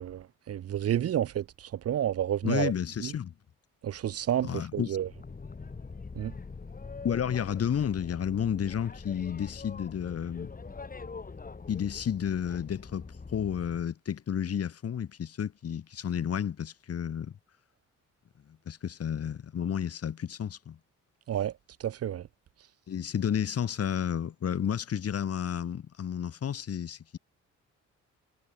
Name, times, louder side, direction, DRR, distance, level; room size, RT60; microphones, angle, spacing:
voice 1, 0.0-2.7 3.0-3.1 3.8-5.1 6.1-6.3 21.3-21.5 21.8-22.3, right 10 dB, 55° right, 0.8 m, -30 dB
voice 2, 2.4-3.3 4.4-5.0 7.0-10.5 11.7-13.1 13.3-17.3 18.5-20.8 22.9-27.2, left 8 dB, 50° left, 2.4 m, -31 dB
Boat Water vehicle, 5.0-13.9, left 4 dB, 30° left, 4.3 m, -43 dB
cardioid pair, 90°, 30 cm